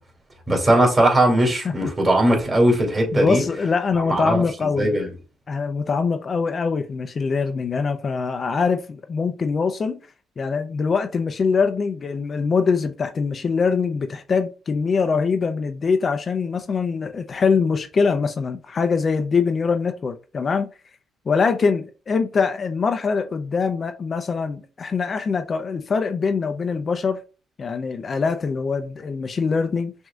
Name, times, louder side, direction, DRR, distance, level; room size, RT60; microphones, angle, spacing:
voice 1, 0.5-3.4 4.1-5.1, right 1 dB, 25° right, 2.2 m, -19 dB
voice 2, 3.1-5.0 5.5-10.0 10.4-20.7 21.3-27.2 27.6-29.9, left 5 dB, 40° left, 0.5 m, -23 dB
6.1 x 2.7 x 2.4 m
cardioid pair, 90°, 0 cm